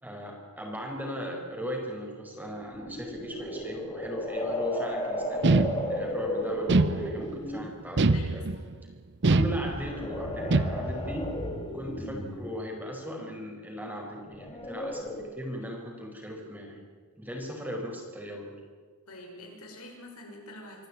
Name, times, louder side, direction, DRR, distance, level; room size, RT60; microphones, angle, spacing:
voice 1, 0.0-8.5 9.2-11.3 11.7-16.8 17.2-18.5, equal, 10° right, 1 dB, 4.7 m, -38 dB
sound 1, 2.7-7.7 9.4-12.6 14.3-15.3, left 1 dB, 25° left, 2.9 m, -34 dB
sound 2, 5.4-6.2 6.7-7.5 8.0-8.8 9.2-10.0 10.5-11.1, right 3 dB, 55° right, 0.8 m, -24 dB
voice 2, 8.1-8.7 19.1-20.9, left 1 dB, 90° left, 1 dB, 6.1 m, -46 dB
25.0 x 15.0 x 8.9 m, 1.5 s
head